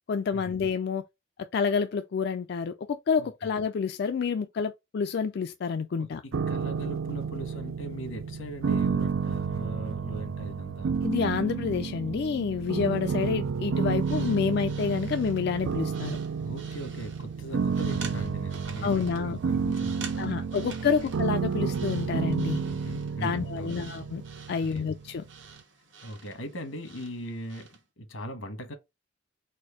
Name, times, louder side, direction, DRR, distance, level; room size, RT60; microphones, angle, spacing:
voice 1, 0.1-1.0 1.4-6.2 11.0-16.2 18.8-19.4 20.2-22.6 23.2-24.2 24.5-25.2, left 6 dB, 55° left, 0.3 m, -28 dB
voice 2, 3.2-3.5 5.9-10.9 16.4-20.5 20.8-20.9 22.6-23.9 24.7-24.9 26.0-28.7, equal, 85° left, 1.3 m, -40 dB
sound 1, 6.3-25.3, right 5 dB, 85° right, 0.4 m, -31 dB
sound 2, 13.9-27.8, right 6 dB, 65° right, 1.0 m, -48 dB
4.3 x 2.6 x 4.7 m
head